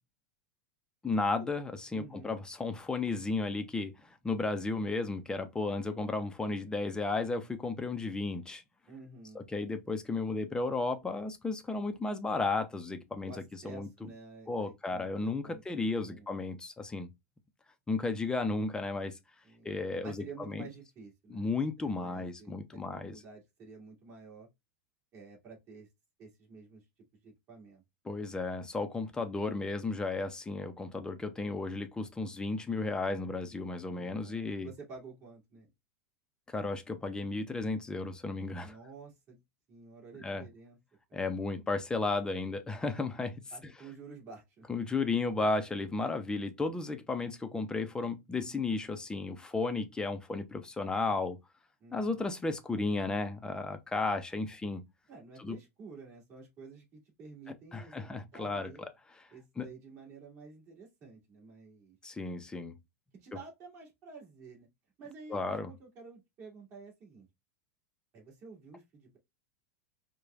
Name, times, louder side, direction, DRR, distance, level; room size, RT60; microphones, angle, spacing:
voice 1, 1.0-8.6 9.3-13.3 13.6-13.9 14.5-17.1 17.9-19.2 19.6-20.7 21.3-23.2 28.0-34.7 36.5-38.8 40.2-40.5 41.1-43.4 44.7-51.4 51.9-54.9 55.4-55.6 57.5-59.2 59.6-59.7 62.0-62.8 65.3-65.7, left 3 dB, 10° left, 0.5 m, -34 dB
voice 2, 1.9-2.3 8.9-9.5 13.2-16.3 19.4-19.7 20.0-21.5 21.8-22.8 23.1-24.5 25.1-25.9 26.2-26.8 27.2-27.8 33.9-35.7 38.6-39.4 39.7-40.8 41.1-41.2 43.5-44.7 51.8-52.2 55.1-58.8 59.3-62.0 63.1-64.7 65.0-67.3 68.1-69.2, right 4 dB, 35° right, 2.2 m, -51 dB
4.8 x 2.2 x 2.4 m
supercardioid pair, 135°, 9 cm